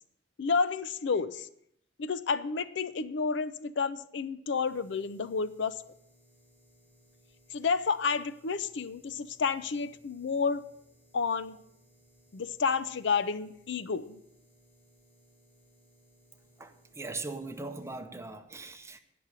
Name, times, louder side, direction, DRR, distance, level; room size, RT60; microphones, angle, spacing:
voice 1, 0.4-1.5 2.0-5.7 7.5-10.6 11.1-11.6 12.3-14.2, left 5 dB, 65° left, 0.5 m, -30 dB
sound 1, 4.6-18.0, equal, 10° left, 4.8 m, -64 dB
voice 2, 16.6-19.0, right 3 dB, 15° right, 0.8 m, -40 dB
10.0 x 5.9 x 8.1 m
head